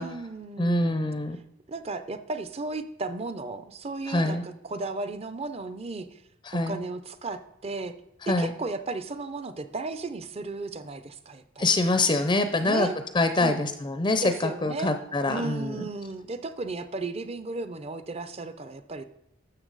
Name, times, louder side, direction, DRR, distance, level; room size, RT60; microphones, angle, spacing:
voice 1, 0.0-1.1 1.7-6.2 6.7-7.9 8.3-11.7 12.6-13.0 13.4-13.6 14.2-14.9 15.3-19.0, right 3 dB, 30° right, 11 dB, 0.5 m, -34 dB
voice 2, 0.6-1.4 4.1-4.4 6.4-6.8 8.2-8.5 11.6-12.9 13.1-15.8, left 2 dB, 20° left, 8 dB, 0.5 m, -25 dB
12.5 x 6.8 x 4.0 m, 0.79 s
head